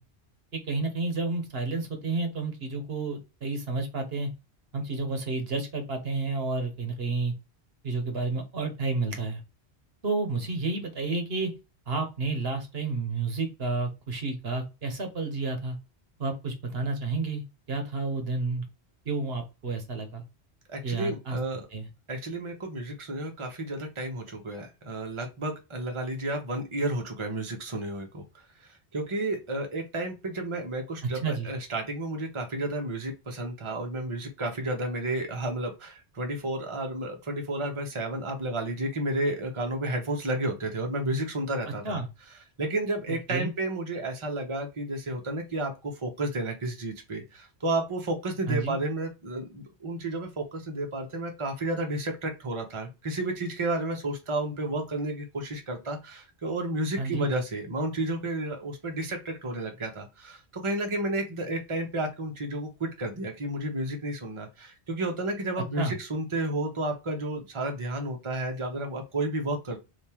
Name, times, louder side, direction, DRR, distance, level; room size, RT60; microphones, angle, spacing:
voice 1, 0.5-4.3 4.7-7.3 7.8-9.4 10.0-11.5 11.9-15.8 16.2-18.7 19.0-20.2 20.8-21.4 21.7-21.9 31.2-31.5 41.8-42.1 43.1-43.5 48.5-48.8 57.0-57.2 65.8-65.9, right 3 dB, 65° right, 4 dB, 1.3 m, -30 dB
voice 2, 20.7-21.6 22.1-28.2 28.6-42.0 42.6-69.8, right 1 dB, 30° right, 3 dB, 1.0 m, -32 dB
3.6 x 2.8 x 4.3 m, 0.26 s
omnidirectional pair, 1.1 m